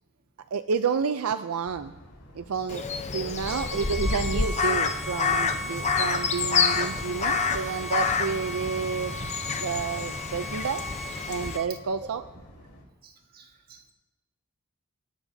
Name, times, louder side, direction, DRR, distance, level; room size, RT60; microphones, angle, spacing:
voice 1, 0.5-1.9 2.3-2.9 3.1-9.1 9.6-10.8 11.3-12.2, right 5 dB, 75° right, 10 dB, 0.5 m, -30 dB
sound 1, 1.6-12.8, equal, 85° left, 4.3 m, -51 dB
Crow, 2.7-11.6, left 5 dB, 30° left, 0.7 m, -28 dB
Bowed string instrument, 3.4-11.7, equal, ahead, 1.1 m, -38 dB
voice 2, 13.0-13.9, right 7 dB, 45° right, 2 dB, 1.6 m, -52 dB
26.5 x 12.0 x 2.7 m, 1.1 s
head